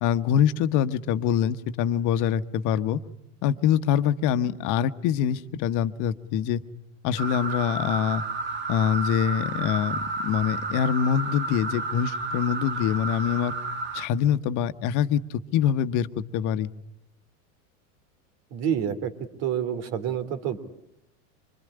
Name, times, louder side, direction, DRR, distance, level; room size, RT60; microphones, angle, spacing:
voice 1, 0.0-3.0 3.4-6.6 7.0-8.2 8.7-13.5 13.9-16.7, left 9 dB, 50° left, 11 dB, 1.2 m, -24 dB
sound 1, 7.2-14.1, right 3 dB, 30° right, 1.7 m, -31 dB
voice 2, 18.5-19.1 19.4-20.6, right 9 dB, 60° right, 12 dB, 3.0 m, -28 dB
26.0 x 22.0 x 9.9 m, 0.78 s
supercardioid pair, 120°, 38 cm